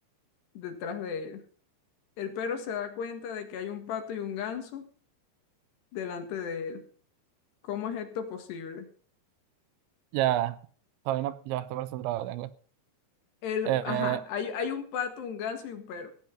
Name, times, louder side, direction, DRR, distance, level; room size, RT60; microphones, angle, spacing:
voice 1, 0.6-1.4 2.2-4.9 5.9-6.8 7.6-8.9 13.4-16.1, left 7 dB, 70° left, 6 dB, 3.7 m, -34 dB
voice 2, 10.1-10.6 11.1-12.5 13.7-14.2, right 14 dB, 85° right, 13 dB, 3.1 m, -29 dB
15.5 x 9.1 x 5.5 m, 0.43 s
omnidirectional pair, 5.3 m